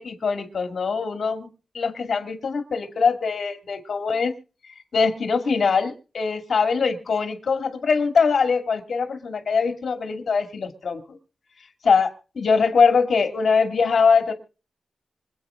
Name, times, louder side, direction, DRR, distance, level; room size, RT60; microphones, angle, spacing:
voice 1, 0.0-1.5 1.7-4.3 4.9-11.0 11.8-14.3, left 5 dB, 55° left, 6 dB, 2.3 m, -22 dB
26.0 x 8.6 x 3.8 m, 0.36 s
wide cardioid pair, 170°, 0 cm